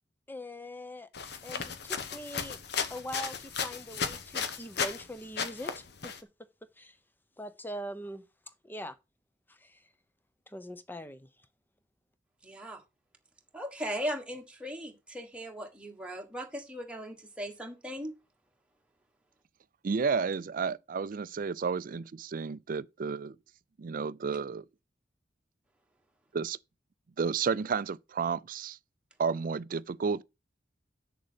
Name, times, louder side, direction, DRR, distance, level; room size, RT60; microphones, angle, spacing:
voice 1, 0.3-1.1 1.4-2.6 2.9-6.1 6.8-7.0 7.4-8.2 8.6-9.0 9.5-9.8 10.5-11.3, equal, 10° left, 0.8 m, -42 dB
sound 1, 1.1-5.0 5.4-6.2, left 6 dB, 60° left, 1.0 m, -35 dB
voice 2, 12.4-12.8 13.5-18.1, equal, 5° right, 1.4 m, -38 dB
voice 3, 19.8-23.4 23.8-24.6 26.3-26.6 27.2-28.8 29.2-30.2, right 5 dB, 50° right, 0.4 m, -31 dB
7.6 x 6.7 x 5.1 m
head